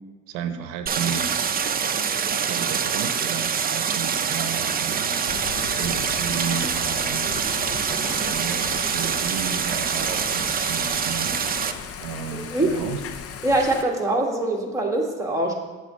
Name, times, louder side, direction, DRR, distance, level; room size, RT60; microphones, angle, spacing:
voice 1, 0.3-1.3 2.5-5.2 5.7-7.3 7.9-11.3 12.0-13.0 14.1-14.2, right 7 dB, 85° right, 8 dB, 0.7 m, -33 dB
Stream, 0.9-11.7, right 7 dB, 30° right, 0.6 m, -25 dB
Thunder / Rain, 5.3-13.8, left 7 dB, 50° left, 0.7 m, -37 dB
voice 2, 13.4-15.5, right 2 dB, 10° right, -1 dB, 1.5 m, -23 dB
8.3 x 3.9 x 6.3 m, 1.3 s
supercardioid pair, 85°, 30 cm